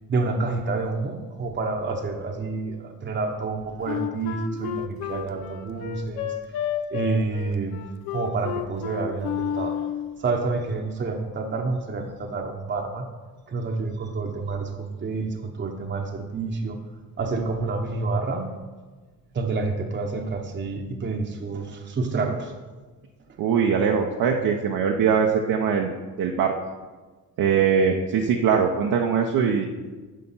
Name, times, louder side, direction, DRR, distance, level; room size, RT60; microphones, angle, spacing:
voice 1, 0.0-7.7 8.1-9.8 10.2-13.1 13.5-16.8 17.2-18.5 19.3-22.5, right 3 dB, 30° right, 3 dB, 1.0 m, -28 dB
Wind instrument woodwind instrument, 3.8-10.1, left 9 dB, 85° left, 0.8 m, -30 dB
voice 2, 23.4-26.5 27.4-29.7, right 6 dB, 65° right, 1 dB, 0.9 m, -22 dB
10.0 x 5.6 x 5.6 m, 1.3 s
cardioid pair, 105°, 36 cm